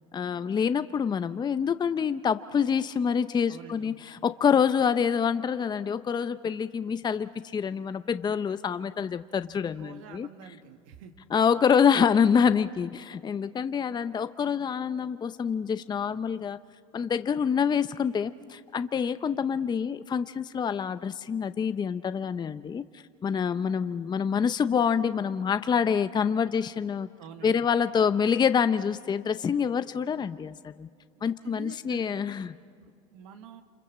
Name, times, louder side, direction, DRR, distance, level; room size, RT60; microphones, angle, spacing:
voice 1, 0.1-10.3 11.3-16.6 16.9-22.8 23.2-27.1 27.4-30.9 31.2-32.5, left 7 dB, 25° left, 12 dB, 0.6 m, -26 dB
voice 2, 3.4-4.0 9.8-11.1 27.2-27.7 31.1-32.2 32.8-33.6, right 7 dB, 85° right, 6 dB, 1.7 m, -47 dB
29.0 x 25.5 x 7.3 m, 2.2 s
supercardioid pair, 95°, 16 cm